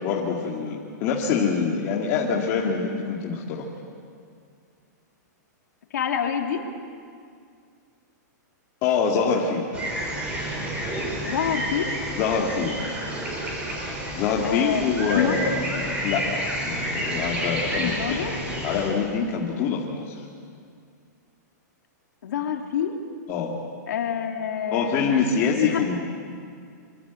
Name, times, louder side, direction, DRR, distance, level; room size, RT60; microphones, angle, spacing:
voice 1, 0.0-3.7 8.8-9.6 12.1-12.9 14.1-18.3 18.6-20.2 23.3-23.5 24.7-26.0, left 5 dB, 25° left, -2 dB, 2.1 m, -25 dB
voice 2, 5.9-6.7 11.2-12.0 14.4-15.4 17.8-18.4 22.2-23.0 23.9-25.1 25.6-25.8, left 8 dB, 65° left, 2 dB, 3.3 m, -27 dB
sound 1, 9.7-18.9, right 1 dB, 10° right, 5.0 m, -30 dB
26.5 x 24.0 x 8.4 m, 2.2 s
supercardioid pair, 175°, 10 cm